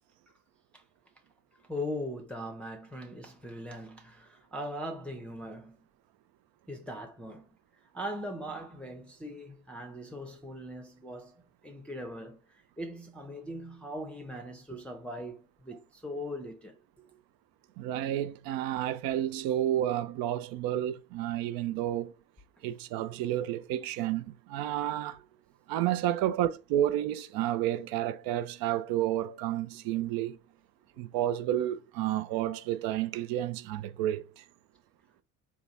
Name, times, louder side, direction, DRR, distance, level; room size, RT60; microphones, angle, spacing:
voice 1, 1.6-5.8 6.7-7.5 7.9-16.8, equal, 5° left, 0.7 m, -40 dB
voice 2, 17.8-22.1 22.6-25.2 25.7-30.4 31.0-34.4, right 12 dB, 50° right, 0.5 m, -31 dB
3.9 x 2.3 x 4.0 m
figure-of-eight pair, 55°, 46 cm